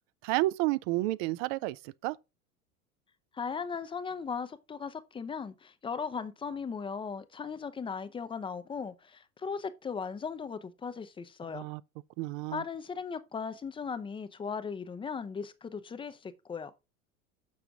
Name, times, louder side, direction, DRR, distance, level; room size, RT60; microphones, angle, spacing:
voice 1, 0.2-2.2 11.5-11.8 12.2-12.6, right 19 dB, 40° right, 0.4 m, -31 dB
voice 2, 3.3-11.7 12.5-16.7, left 5 dB, 10° left, 0.6 m, -37 dB
6.8 x 6.3 x 3.6 m
figure-of-eight pair, 85°, 43 cm